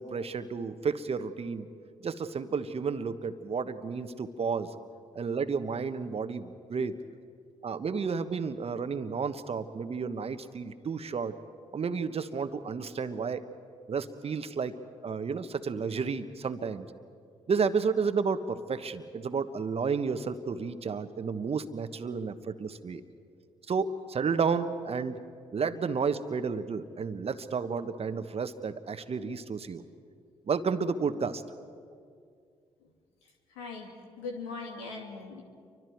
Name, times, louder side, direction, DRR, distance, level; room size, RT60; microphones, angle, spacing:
voice 1, 0.0-1.7 2.0-4.7 5.1-7.0 7.6-11.3 11.7-13.4 13.9-14.7 15.0-16.9 17.5-23.0 23.7-25.2 25.5-29.8 30.5-31.4, right 5 dB, 45° right, 10 dB, 1.4 m, -31 dB
voice 2, 33.5-33.9 34.2-35.4, left 4 dB, 85° left, 1 dB, 2.8 m, -39 dB
29.5 x 24.5 x 4.7 m, 2.2 s
hypercardioid pair, 45°, 14 cm